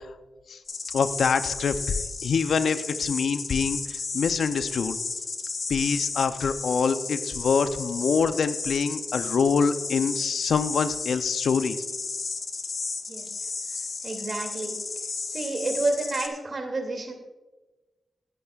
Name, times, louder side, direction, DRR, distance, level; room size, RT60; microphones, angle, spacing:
sound 1, 0.7-16.3, left 4 dB, 60° left, 1.2 m, -34 dB
voice 1, 0.9-1.8 2.2-3.8 4.1-5.0 5.7-11.8, left 5 dB, 75° left, 11 dB, 0.6 m, -25 dB
voice 2, 14.0-14.7 15.3-17.1, right 2 dB, 55° right, 4 dB, 2.5 m, -29 dB
17.5 x 9.1 x 2.4 m, 1.1 s
cardioid pair, 50°, 0 cm